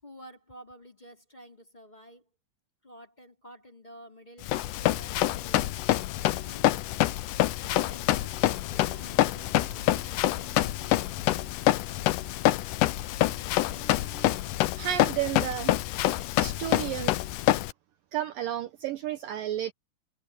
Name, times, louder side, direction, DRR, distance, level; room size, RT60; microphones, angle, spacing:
voice 1, 0.0-2.3 2.8-6.7 7.6-10.1, equal, 10° left, 4.0 m, -51 dB
Run, 4.4-17.7, left 15 dB, 80° left, 1.8 m, -26 dB
sound 1, 7.5-14.4, equal, 65° left, 7.5 m, -53 dB
voice 2, 14.8-15.8 16.4-17.2 18.1-19.7, right 12 dB, 70° right, 2.3 m, -32 dB
omnidirectional pair, 4.6 m